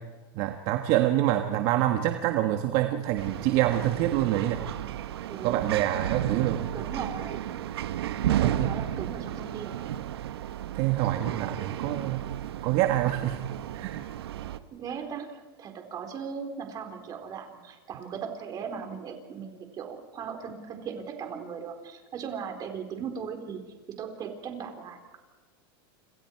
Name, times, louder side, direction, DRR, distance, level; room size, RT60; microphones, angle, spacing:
voice 1, 0.3-4.6 5.4-6.7 8.4-8.8 10.7-12.3 12.6-13.4 13.7-14.1, right 13 dB, 50° right, 6 dB, 1.5 m, -26 dB
sound 1, 3.2-14.6, right 11 dB, 90° right, 1.3 m, -33 dB
voice 2, 5.3-5.7 6.4-7.6 8.1-9.9 14.7-23.6 24.0-25.2, right 6 dB, 30° right, 4 dB, 4.3 m, -38 dB
29.0 x 28.0 x 4.7 m, 1.3 s
supercardioid pair, 140°, 13 cm